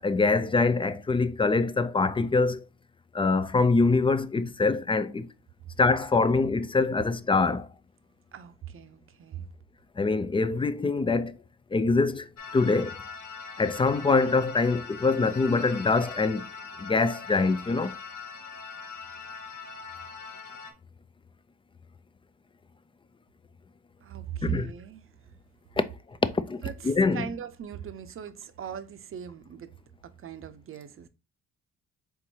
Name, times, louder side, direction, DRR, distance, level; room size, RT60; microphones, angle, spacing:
voice 1, 0.0-2.6 3.1-5.3 5.8-7.7 10.0-11.4 11.7-13.0 13.6-16.4 16.8-18.0 24.4-24.7 25.8-27.3, left 3 dB, 20° left, 0.4 m, -24 dB
voice 2, 8.3-9.5 24.0-25.1 26.6-29.7 30.0-31.1, right 9 dB, 45° right, 0.6 m, -39 dB
sound 1, 12.4-20.7, left 5 dB, 65° left, 0.9 m, -41 dB
4.5 x 3.6 x 2.8 m
cardioid pair, 90°, 30 cm